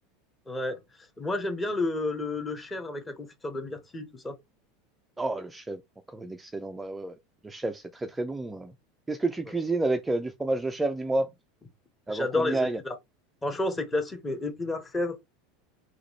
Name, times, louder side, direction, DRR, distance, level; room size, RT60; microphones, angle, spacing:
voice 1, 0.5-0.8 1.2-4.3 12.1-12.9 13.4-15.1, left 2 dB, 15° left, 1.2 m, -31 dB
voice 2, 5.2-5.8 6.1-7.2 7.4-8.7 9.1-11.3 12.1-12.8, right 2 dB, 10° right, 0.4 m, -30 dB
3.8 x 3.0 x 3.1 m
figure-of-eight pair, 80°, 0 cm